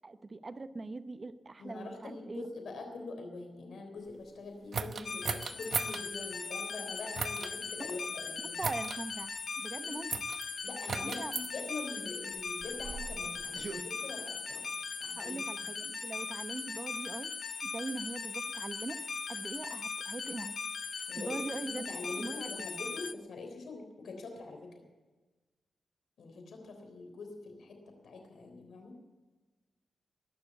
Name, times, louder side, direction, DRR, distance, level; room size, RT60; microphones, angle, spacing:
voice 1, 0.0-2.4 7.8-7.9 8.6-10.2 11.0-11.3 15.2-17.3 17.6-19.0 19.3-20.6 21.2-22.7, right 3 dB, 35° right, 10 dB, 0.9 m, -41 dB
voice 2, 1.6-8.6 9.8-10.0 10.6-14.6 15.0-15.7 21.1-24.8 26.2-27.8 28.0-29.0, left 3 dB, 80° left, 4 dB, 3.6 m, -44 dB
sound 1, 4.7-6.0 7.1-7.5 8.6-9.0 10.1-10.4 10.9-11.5 12.4-13.8, right 5 dB, 60° right, 0.8 m, -37 dB
sound 2, 5.0-23.1, left 5 dB, 55° left, 0.6 m, -39 dB
21.0 x 7.0 x 8.2 m, 1.2 s
cardioid pair, 85°, 0 cm